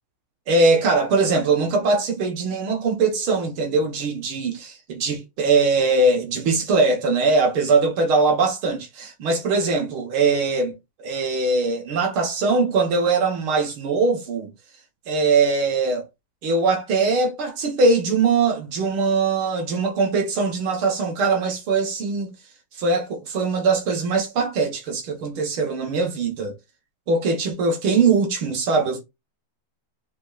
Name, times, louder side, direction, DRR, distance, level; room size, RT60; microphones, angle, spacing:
voice 1, 0.5-10.7 11.0-14.5 15.1-16.1 16.4-22.3 22.8-26.6 27.1-29.0, right 3 dB, 90° right, 2.4 m, -21 dB
11.5 x 4.6 x 2.5 m
omnidirectional pair, 2.2 m